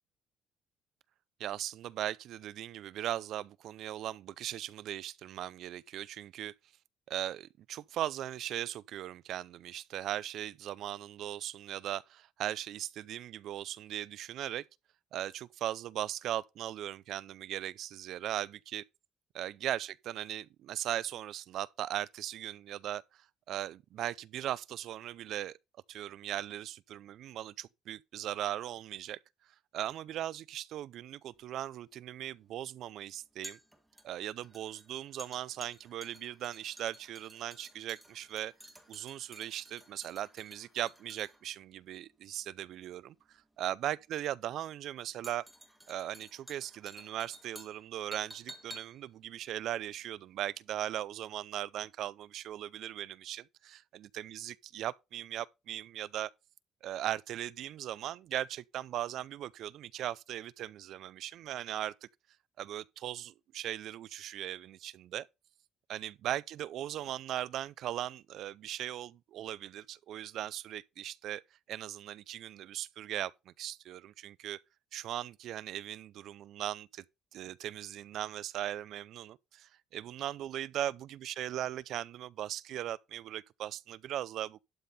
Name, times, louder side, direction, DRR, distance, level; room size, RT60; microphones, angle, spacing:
voice 1, 1.4-6.5 7.1-14.6 15.1-18.8 19.3-23.2 23.5-25.6 25.9-29.2 29.7-33.6 34.0-38.5 38.9-45.5 45.9-53.8 54.3-56.3 56.8-62.1 62.6-65.3 65.9-71.4 71.7-74.6 74.9-77.0 77.3-84.6, right 12 dB, 60° right, 0.4 m, -38 dB
sound 1, 31.3-50.6 50.8-51.0, right 1 dB, 5° right, 1.7 m, -53 dB
11.5 x 5.4 x 4.2 m
cardioid pair, 140°, 0 cm